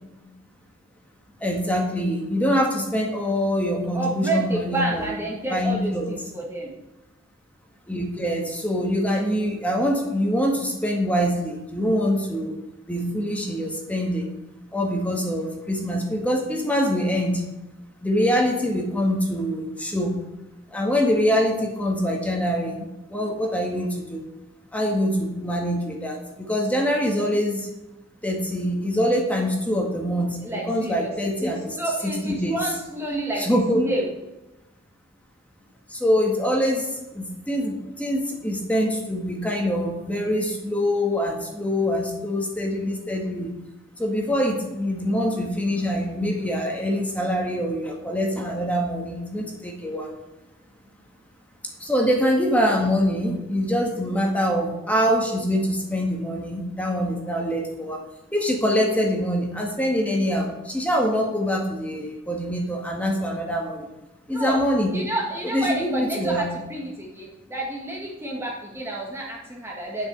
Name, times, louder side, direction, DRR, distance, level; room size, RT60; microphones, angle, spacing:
voice 1, 1.4-5.1 5.5-6.1 7.9-12.5 12.9-14.3 14.7-17.4 18.0-20.1 20.7-22.8 23.1-24.2 24.7-26.2 26.5-27.7 28.2-31.7 32.0-32.6 33.4-33.9 35.9-36.9 37.1-43.5 44.0-50.1 51.8-58.0 58.3-63.9 64.3-65.0 65.5-66.5, equal, 5° left, 0 dB, 1.7 m, -24 dB
voice 2, 3.9-6.7 30.4-31.1 31.4-34.1 64.3-64.6 64.9-70.1, right 1 dB, 15° right, -2 dB, 1.5 m, -29 dB
9.4 x 6.3 x 8.0 m, 1.0 s
head